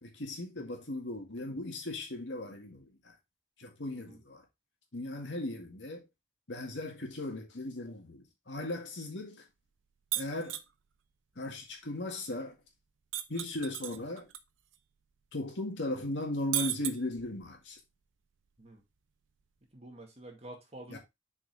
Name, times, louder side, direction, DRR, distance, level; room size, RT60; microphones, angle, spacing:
voice 1, 0.0-3.2 3.6-4.4 4.9-6.1 6.5-9.5 10.2-10.6 11.4-12.6 13.3-14.3 15.3-17.8 20.9-21.0, left 1 dB, 70° left, 2.0 m, -37 dB
voice 2, 3.9-4.2 18.6-18.8 19.7-21.0, right 1 dB, 35° right, 1.9 m, -49 dB
sound 1, 10.1-10.7 13.1-14.4 14.7-14.8 16.5-17.5, right 14 dB, 85° right, 0.7 m, -34 dB
6.9 x 4.8 x 3.4 m
head